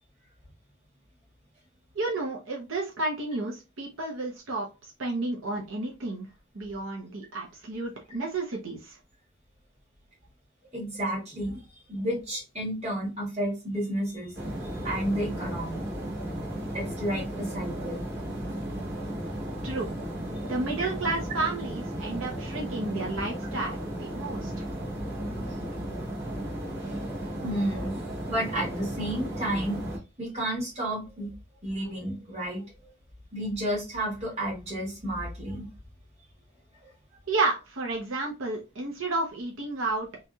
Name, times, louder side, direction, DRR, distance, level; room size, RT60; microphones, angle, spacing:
voice 1, 1.9-4.7 5.0-6.3 6.5-9.0 19.6-19.9 20.4-24.6 37.3-40.1, right 2 dB, 85° right, -1 dB, 0.8 m, -31 dB
voice 2, 10.7-11.6 11.9-14.3 14.6-15.8 16.7-18.1 25.4-25.6 27.1-28.0 28.3-29.8 30.2-31.3 31.6-32.9 33.3-35.7, right 1 dB, 35° right, -4 dB, 1.7 m, -31 dB
sound 1, 14.3-30.0, equal, 60° right, 1.6 m, -35 dB
3.3 x 2.8 x 2.3 m, 0.28 s
head